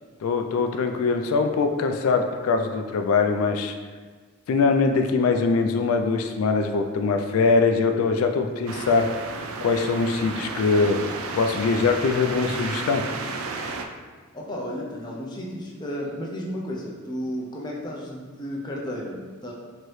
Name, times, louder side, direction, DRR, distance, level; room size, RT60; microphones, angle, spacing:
voice 1, 0.2-3.7 4.5-9.1 9.6-11.0 11.4-13.0, left 4 dB, 75° left, 5 dB, 0.3 m, -22 dB
sound 1, 8.7-13.9, right 4 dB, 75° right, 0.4 m, -33 dB
voice 2, 14.3-19.5, equal, 20° left, -3 dB, 0.5 m, -33 dB
4.5 x 2.9 x 3.1 m, 1.5 s
head